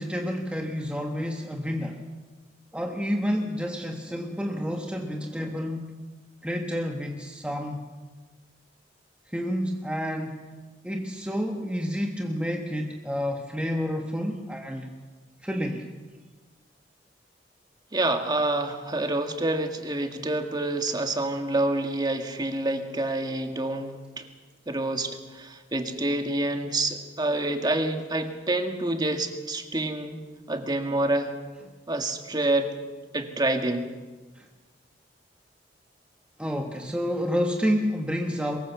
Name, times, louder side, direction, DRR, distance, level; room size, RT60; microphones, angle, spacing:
voice 1, 0.0-2.0 2.7-5.9 6.4-7.9 9.3-10.5 10.8-14.9 15.4-15.9 34.3-34.5 36.4-38.6, equal, 5° right, 1 dB, 1.4 m, -29 dB
voice 2, 17.9-24.3 24.7-30.2 30.5-31.3 31.9-32.7 33.1-33.9, right 2 dB, 25° right, 5 dB, 1.9 m, -27 dB
23.0 x 21.0 x 7.0 m, 1.3 s
head